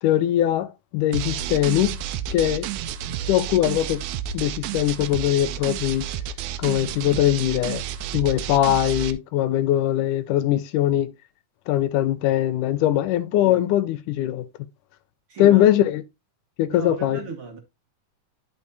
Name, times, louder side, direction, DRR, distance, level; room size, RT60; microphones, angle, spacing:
voice 1, 0.0-2.0 2.3-2.7 3.3-4.0 4.3-6.1 6.6-7.8 8.1-11.1 11.7-14.4 15.4-16.0 16.6-17.2, left 12 dB, 85° left, 2.2 m, -21 dB
sound 1, 1.1-9.1, right 9 dB, 80° right, 2.1 m, -31 dB
voice 2, 15.3-15.6 16.7-17.6, right 5 dB, 60° right, 1.6 m, -35 dB
11.0 x 6.0 x 2.7 m
omnidirectional pair, 3.5 m